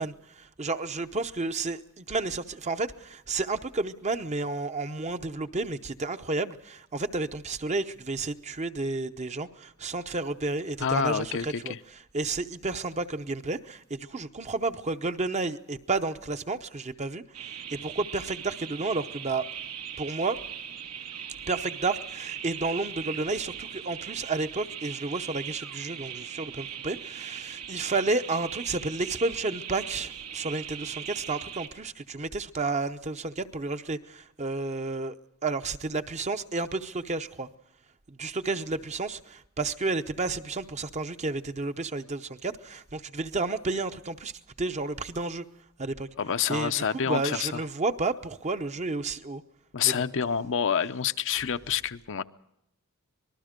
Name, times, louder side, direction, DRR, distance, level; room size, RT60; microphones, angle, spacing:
voice 1, 0.0-11.7 12.1-19.4 20.0-20.4 21.5-35.1 35.4-37.5 38.1-44.3 44.6-45.4 45.8-46.1 46.5-49.4 49.8-50.1, right 3 dB, 30° right, 0.8 m, -31 dB
voice 2, 10.8-11.8 46.2-47.6 49.7-52.2, left 7 dB, 60° left, 0.7 m, -28 dB
sound 1, 17.3-31.7, right 9 dB, 90° right, 2.4 m, -40 dB
25.5 x 20.0 x 5.2 m
head